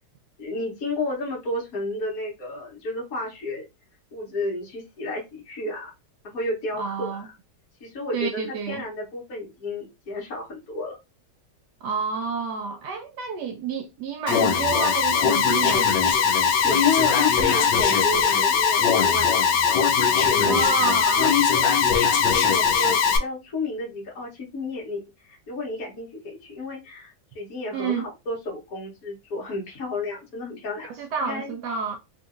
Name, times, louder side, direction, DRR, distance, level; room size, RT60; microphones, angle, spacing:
voice 1, 0.4-3.6 4.1-5.9 6.2-7.3 7.8-11.0 16.5-19.4 20.2-20.7 21.2-21.9 22.3-30.9 31.2-31.5, left 2 dB, 55° left, 1.4 m, -32 dB
voice 2, 6.7-7.3 8.1-8.8 11.8-15.9 20.4-21.3 27.7-28.1 30.9-32.0, right 5 dB, 75° right, 1.1 m, -29 dB
Alarm, 14.3-23.2, left 7 dB, 80° left, 1.3 m, -20 dB
3.7 x 2.5 x 2.5 m
omnidirectional pair, 1.9 m